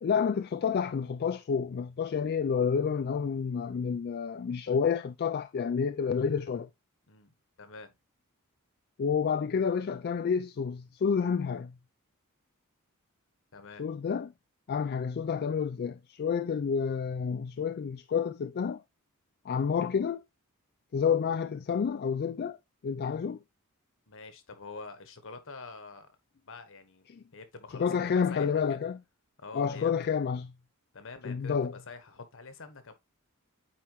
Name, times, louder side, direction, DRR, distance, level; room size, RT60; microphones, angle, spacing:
voice 1, 0.0-6.7 9.0-11.7 13.8-14.3 14.7-18.8 19.5-20.2 20.9-22.6 22.8-23.4 27.1-27.2 27.7-29.0 29.5-30.5 31.2-31.7, left 6 dB, 45° left, 0.3 m, -29 dB
voice 2, 7.1-7.9 13.5-13.9 24.1-26.2 26.5-27.1 27.3-28.8 29.4-29.9 30.9-32.9, left 4 dB, 65° left, 1.3 m, -46 dB
8.8 x 4.4 x 3.0 m
head